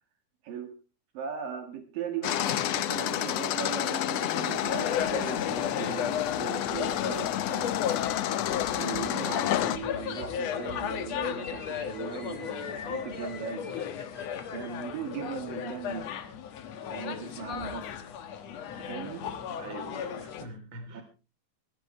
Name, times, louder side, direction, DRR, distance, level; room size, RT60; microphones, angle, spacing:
voice 1, 1.1-8.5 8.7-13.8 14.5-16.1 16.9-17.9 18.8-19.3 20.9-21.0, right 8 dB, 75° right, 6 dB, 3.4 m, -38 dB
sound 1, 2.2-9.8, left 12 dB, 85° left, 1.4 m, -30 dB
sound 2, 4.4-20.4, left 8 dB, 60° left, 2.2 m, -35 dB
sound 3, 9.3-14.8, left 3 dB, 20° left, 2.4 m, -50 dB
voice 2, 19.6-21.0, right 3 dB, 35° right, 7 dB, 3.9 m, -44 dB
19.5 x 15.0 x 3.2 m, 0.32 s
omnidirectional pair, 4.0 m